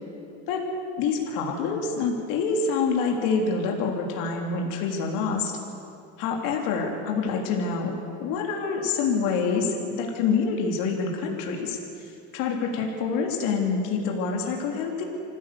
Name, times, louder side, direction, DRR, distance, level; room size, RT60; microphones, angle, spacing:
voice 1, 1.0-5.5 6.2-7.9 8.2-12.1 12.3-15.0, left 5 dB, 65° left, 1 dB, 3.4 m, -26 dB
26.0 x 15.5 x 7.0 m, 2.7 s
supercardioid pair, 125°, 36 cm